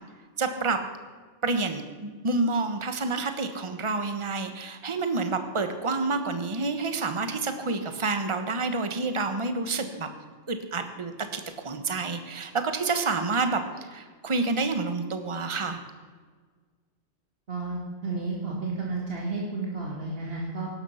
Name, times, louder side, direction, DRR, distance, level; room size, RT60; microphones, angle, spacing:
voice 1, 0.4-0.8 1.4-10.1 10.5-13.6 13.9-15.8, right 3 dB, 25° right, 8 dB, 1.2 m, -28 dB
voice 2, 17.5-20.7, right 3 dB, 50° right, -3 dB, 2.6 m, -32 dB
17.0 x 12.5 x 5.7 m, 1.5 s
omnidirectional pair, 1.3 m